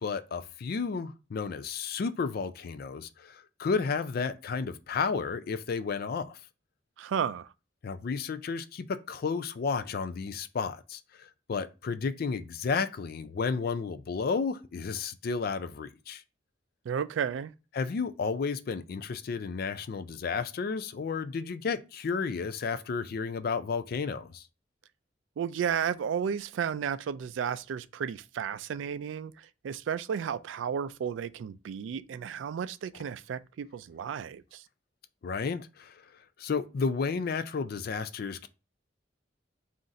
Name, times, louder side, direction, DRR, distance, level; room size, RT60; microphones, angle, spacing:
voice 1, 0.0-6.4 7.8-16.2 17.7-24.5 35.2-36.0 36.4-38.5, left 5 dB, 55° left, 0.4 m, -32 dB
voice 2, 7.0-7.5 16.9-17.5 25.4-34.6, right 7 dB, 80° right, 0.3 m, -33 dB
3.9 x 2.5 x 4.1 m
head